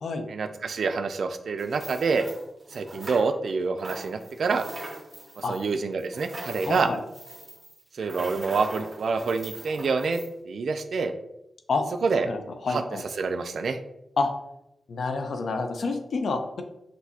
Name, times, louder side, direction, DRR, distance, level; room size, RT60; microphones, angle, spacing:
voice 1, 0.3-2.3 2.7-4.6 5.4-6.9 7.9-11.1 12.0-12.3 12.7-12.8 13.2-13.8, right 4 dB, 70° right, 8 dB, 0.4 m, -27 dB
sound 1, 1.6-3.5 3.8-10.3, right 1 dB, 40° right, 1.6 m, -42 dB
voice 2, 6.6-7.0 11.7-11.8 12.2-13.0 14.2-14.3 14.9-16.6, left 3 dB, 70° left, 5 dB, 0.6 m, -28 dB
6.1 x 2.7 x 2.8 m, 0.87 s
wide cardioid pair, 110°, 0 cm